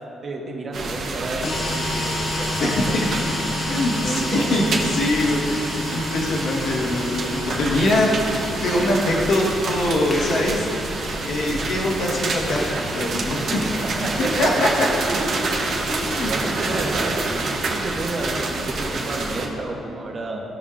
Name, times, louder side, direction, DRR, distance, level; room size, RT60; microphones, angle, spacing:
voice 1, 0.2-4.7 15.1-15.3 15.8-20.4, right 2 dB, 45° right, 0 dB, 1.3 m, -31 dB
sound 1, 0.7-19.5, right 3 dB, 60° right, 1.0 m, -28 dB
sound 2, 1.4-17.0, left 3 dB, 55° left, 0.7 m, -33 dB
voice 2, 2.6-3.1 3.6-7.2 7.6-8.2 8.6-10.7 11.2-12.6 12.9-13.4 14.2-14.9 15.9-16.3, left 1 dB, 75° left, -4 dB, 1.6 m, -22 dB
sound 3, 6.6-19.1, left 1 dB, 20° left, 0.9 m, -38 dB
15.0 x 5.5 x 2.5 m, 2.9 s
cardioid pair, 90°, 0 cm